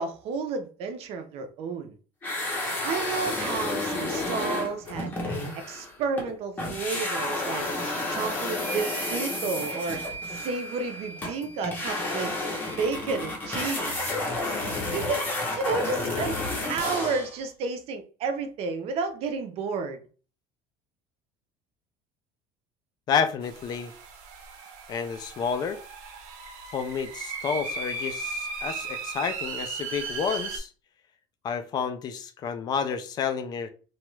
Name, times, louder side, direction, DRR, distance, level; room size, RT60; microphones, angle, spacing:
voice 1, 0.0-1.9 2.8-5.1 5.7-7.7 8.1-10.0 10.3-12.4 12.8-14.1 14.9-15.3 15.6-16.4 16.7-20.0, right 4 dB, 45° right, 0.5 m, -31 dB
sound 1, 2.2-6.3 6.6-17.4, left 2 dB, 15° left, 0.7 m, -31 dB
sound 2, 8.6-12.8, right 5 dB, 80° left, 0.9 m, -40 dB
voice 2, 23.1-23.9 24.9-25.8 26.7-30.7 31.4-33.7, left 6 dB, 30° left, 0.3 m, -30 dB
sound 3, 23.4-30.6, right 4 dB, 85° right, 0.7 m, -36 dB
2.9 x 2.3 x 3.1 m
cardioid pair, 175°, 14 cm